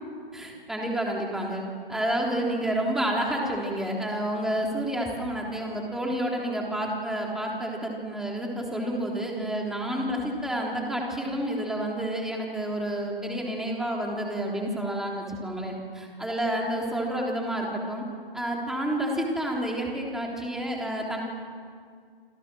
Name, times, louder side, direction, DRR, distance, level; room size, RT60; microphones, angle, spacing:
voice 1, 0.3-1.6 1.9-18.0 18.3-21.2, right 1 dB, ahead, -1 dB, 3.6 m, -29 dB
28.5 x 27.0 x 6.3 m, 2.1 s
figure-of-eight pair, 140°, 29 cm